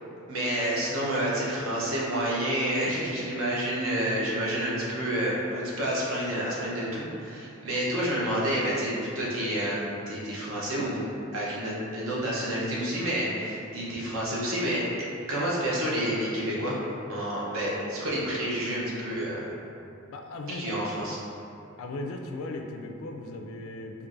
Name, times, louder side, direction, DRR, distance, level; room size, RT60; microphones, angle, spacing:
voice 1, 0.3-11.1 11.3-14.8 15.3-16.8 17.1-19.5 20.5-21.2, right 1 dB, 75° right, -5 dB, 0.8 m, -29 dB
voice 2, 20.1-20.8 21.8-24.1, left 2 dB, 75° left, 3 dB, 0.3 m, -37 dB
4.5 x 2.5 x 2.5 m, 2.7 s
head